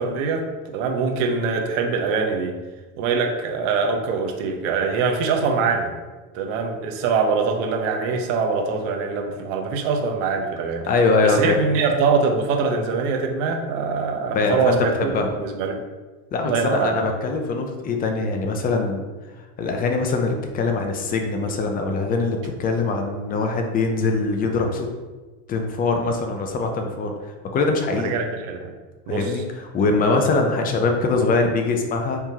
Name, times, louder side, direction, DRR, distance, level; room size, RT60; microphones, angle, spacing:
voice 1, 0.0-2.5 3.0-5.9 6.3-10.9 11.2-15.8 16.5-16.9 27.9-28.7 29.1-29.3, right 5 dB, 60° right, 2 dB, 0.9 m, -23 dB
voice 2, 10.9-11.6 14.3-15.3 16.3-19.0 19.6-24.9 25.5-28.1 29.1-32.2, left 3 dB, 20° left, 3 dB, 0.4 m, -22 dB
4.6 x 3.5 x 2.8 m, 1.3 s
supercardioid pair, 130°, 43 cm